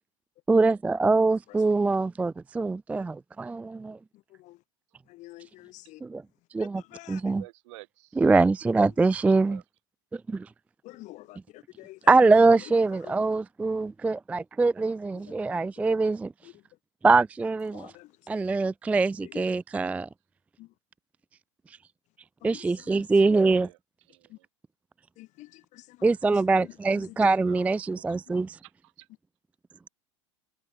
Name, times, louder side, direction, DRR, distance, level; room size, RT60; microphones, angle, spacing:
voice 1, 0.5-4.0 6.0-6.2 6.5-6.8 7.1-7.4 8.2-9.6 10.1-10.5 12.1-16.3 17.0-17.9 18.3-20.1 22.4-23.7 26.0-28.6, right 3 dB, 10° right, 0.3 m, -23 dB
voice 2, 5.1-6.0 6.9-7.2 10.8-12.0 13.0-13.2 17.7-18.1 19.3-19.4 20.6-20.7 22.4-23.4 24.3-24.4 25.2-26.0 26.9-27.0, left 18 dB, 50° left, 1.5 m, -47 dB
voice 3, 7.4-8.2 9.4-9.6 23.5-23.8 24.1-24.4 27.4-28.2 28.6-28.7 29.0-29.1, right 21 dB, 65° right, 5.9 m, -50 dB
hypercardioid pair, 95°, 16 cm